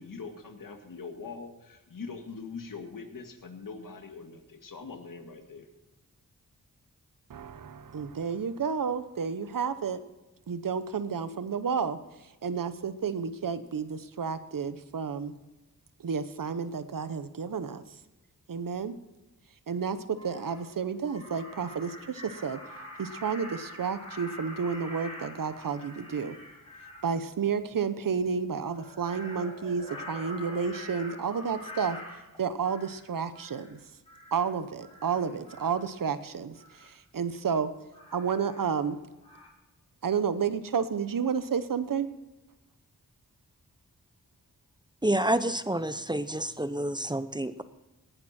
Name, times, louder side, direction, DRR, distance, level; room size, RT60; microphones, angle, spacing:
voice 1, 0.0-5.7, left 4 dB, 70° left, 5 dB, 2.1 m, -42 dB
voice 2, 7.3-10.0 10.5-12.0 12.4-15.3 16.0-17.8 18.5-18.9 19.7-22.6 23.0-26.4 27.0-32.0 32.4-33.8 34.3-37.7 38.1-39.0 40.0-42.1, right 6 dB, 70° right, 12 dB, 1.0 m, -31 dB
Crow, 19.7-19.8 20.1-20.7 21.0-27.1 28.7-33.0 33.3-33.7 34.1-34.5 34.8-35.8 36.6-36.9 37.9-39.0 39.2-39.5, left 1 dB, 15° left, 4.0 m, -45 dB
voice 3, 45.0-47.6, right 1 dB, 15° right, 12 dB, 0.7 m, -28 dB
18.0 x 11.0 x 4.4 m, 1.1 s
wide cardioid pair, 75°, 34 cm